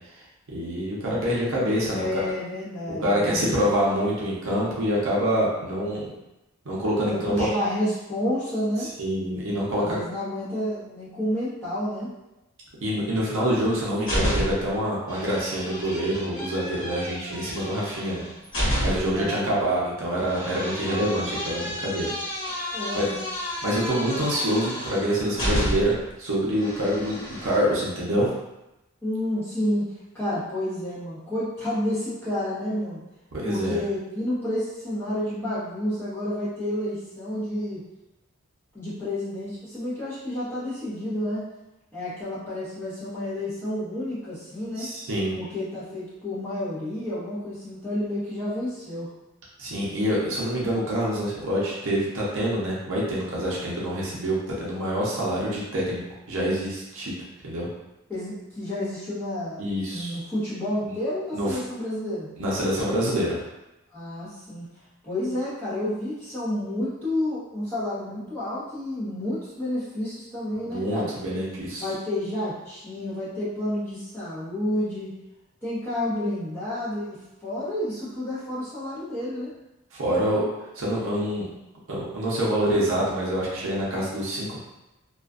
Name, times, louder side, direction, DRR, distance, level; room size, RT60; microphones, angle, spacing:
voice 1, 0.5-2.2 3.0-6.1 6.7-7.5 9.0-10.0 12.8-18.2 18.8-22.1 22.7-23.1 23.6-25.9 26.2-28.3 33.3-33.8 44.8-45.4 49.6-56.0 56.3-57.2 57.4-57.7 59.6-60.2 61.3-61.5 62.4-63.4 70.6-71.9 79.9-80.4 80.8-81.5 81.9-84.6, equal, 60° right, -5 dB, 0.6 m, -26 dB
voice 2, 1.9-3.6 7.1-8.9 9.7-12.1 19.1-19.7 22.7-23.1 29.0-29.8 30.1-33.0 33.4-37.8 38.7-41.4 41.9-44.9 45.3-49.1 58.1-59.6 59.9-62.3 63.9-64.6 65.0-71.1 71.8-75.1 75.6-79.5, left 1 dB, 10° left, -11 dB, 0.9 m, -30 dB
sound 1, 13.7-14.8 15.1-19.2 20.2-26.1 26.5-27.6, equal, 55° left, 1.2 m, -31 dB
2.4 x 2.4 x 2.4 m, 0.95 s
head